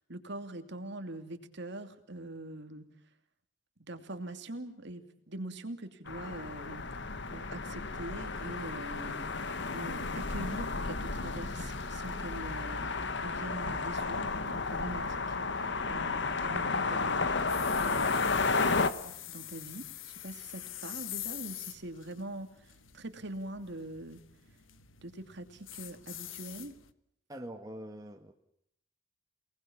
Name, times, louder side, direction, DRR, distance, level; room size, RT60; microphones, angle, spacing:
voice 1, 0.0-2.9 3.8-6.9 7.3-17.4 17.8-18.2 19.0-24.2 25.0-26.7, right 1 dB, 60° right, 7 dB, 2.7 m, -43 dB
sound 1, 6.1-18.9, left 4 dB, 60° left, 1.5 m, -32 dB
sound 2, 17.4-26.9, left 13 dB, 80° left, 1.3 m, -45 dB
voice 2, 27.3-28.3, right 1 dB, 20° right, 3 dB, 1.7 m, -44 dB
29.0 x 19.5 x 7.2 m, 0.74 s
head